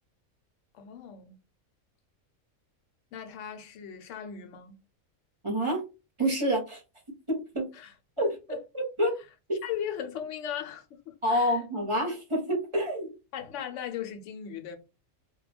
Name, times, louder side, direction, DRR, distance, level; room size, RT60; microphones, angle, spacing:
voice 1, 0.7-1.4 3.1-4.8 7.7-8.6 9.6-11.6 13.3-14.8, left 9 dB, 65° left, 0.8 m, -38 dB
voice 2, 5.4-5.8 6.2-6.8 7.3-7.6 8.2-8.3 8.7-9.1 11.2-13.1, equal, 30° right, 0.6 m, -27 dB
2.3 x 2.1 x 3.2 m
omnidirectional pair, 1.5 m